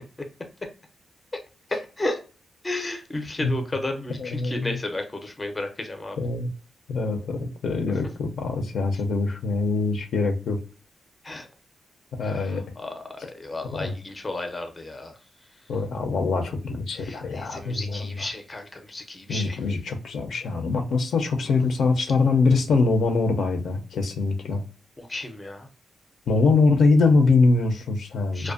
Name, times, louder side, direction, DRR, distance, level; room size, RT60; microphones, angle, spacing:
voice 1, 1.7-2.2 2.6-6.2 11.2-11.5 12.2-15.1 17.0-19.6 25.0-25.7 28.3-28.5, left 2 dB, 20° left, 0.5 m, -33 dB
voice 2, 4.2-4.8 6.2-6.5 6.9-10.6 12.1-12.6 13.7-13.9 15.7-18.1 19.3-24.6 26.3-28.5, left 3 dB, 75° left, 0.5 m, -23 dB
2.5 x 2.2 x 2.4 m
wide cardioid pair, 120°, 0 cm